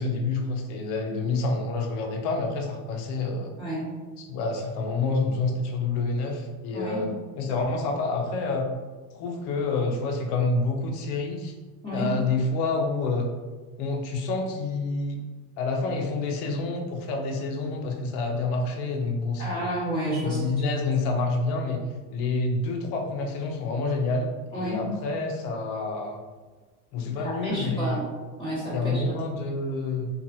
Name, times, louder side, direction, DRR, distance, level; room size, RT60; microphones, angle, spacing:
voice 1, 0.0-3.5 4.2-8.7 9.1-11.5 11.9-13.3 13.8-15.2 15.6-19.7 20.2-21.8 22.1-26.2 26.9-28.0 28.7-30.1, left 3 dB, 60° left, 2 dB, 0.6 m, -28 dB
voice 2, 11.8-12.1 19.4-20.4 24.5-24.8 27.2-28.0 28.4-29.0, right 1 dB, 10° left, -11 dB, 1.3 m, -30 dB
2.7 x 2.3 x 2.6 m, 1.3 s
supercardioid pair, 110°, 45 cm